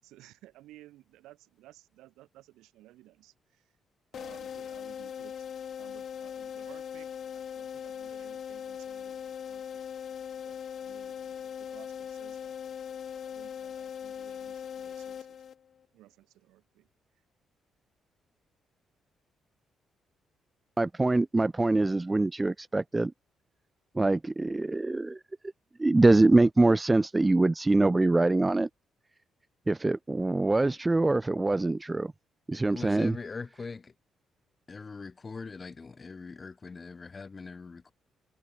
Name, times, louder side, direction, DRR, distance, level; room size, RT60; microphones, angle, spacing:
voice 1, 0.0-3.7 4.1-5.5 5.8-9.8 10.5-15.4 15.9-16.9, right 16 dB, 80° right, 7.0 m, -56 dB
sound 1, 4.1-15.8, left 8 dB, 60° left, 1.2 m, -40 dB
voice 2, 20.8-23.1 23.9-25.2 25.8-28.7 29.7-32.1 32.5-33.2, right 2 dB, 20° right, 0.5 m, -24 dB
voice 3, 32.5-33.9 34.7-37.9, left 4 dB, 35° left, 4.0 m, -41 dB
hypercardioid pair, 50°, 0 cm